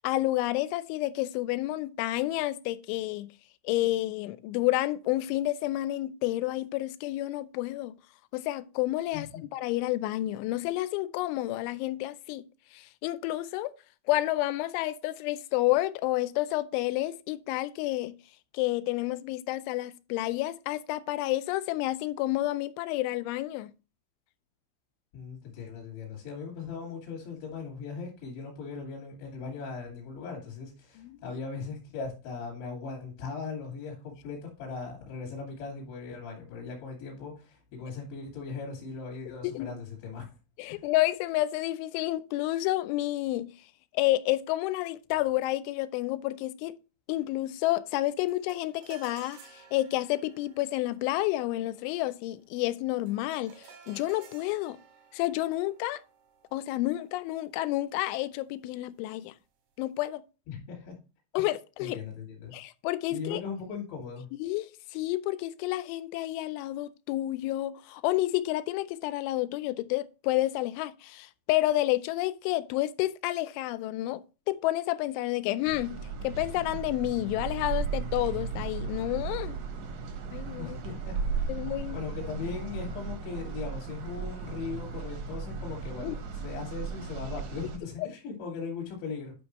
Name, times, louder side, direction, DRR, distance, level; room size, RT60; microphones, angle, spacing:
voice 1, 0.0-3.3 3.7-8.0 8.3-12.4 12.7-13.7 14.1-18.1 18.5-23.7 31.0-31.2 39.5-39.8 40.6-43.5 43.9-46.8 47.1-54.8 55.1-56.0 56.5-59.3 59.8-60.2 61.3-62.0 62.5-63.4 64.4-74.2 74.5-76.0 76.2-79.6 80.3-80.8 81.5-82.0 86.0-86.1 88.0-88.1, left 16 dB, 85° left, 3.0 m, -30 dB
voice 2, 25.1-40.3 40.7-40.8 60.5-60.9 61.4-61.5 61.8-62.5 63.1-64.3 80.6-81.5 81.9-89.3, left 5 dB, 70° left, 4.8 m, -39 dB
sound 1, 48.3-57.8, right 5 dB, 90° right, 4.4 m, -55 dB
sound 2, 75.7-87.8, right 5 dB, 70° right, 1.8 m, -36 dB
11.0 x 5.3 x 3.1 m
omnidirectional pair, 5.4 m